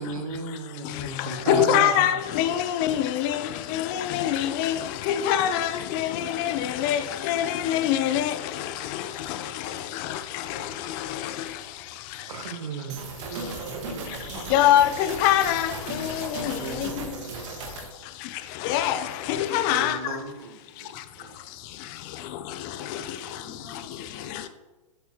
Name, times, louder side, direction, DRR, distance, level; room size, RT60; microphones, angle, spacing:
voice 1, 0.0-1.9 9.6-9.9 12.3-14.5 16.5-17.7 19.7-20.9 21.2-21.3, right 3 dB, 85° right, 1.1 m, -35 dB
voice 2, 1.5-3.4 3.7-4.8 5.1-8.4 10.1-10.2 14.5-15.7 16.0-16.9 18.6-19.0 19.3-20.0, left 11 dB, 35° left, 0.5 m, -23 dB
sound 1, 12.9-17.9, right 3 dB, 60° right, 1.6 m, -36 dB
voice 3, 20.8-21.5 22.9-24.5, equal, 15° right, 2.0 m, -54 dB
8.2 x 7.9 x 3.0 m
hypercardioid pair, 140°, 18 cm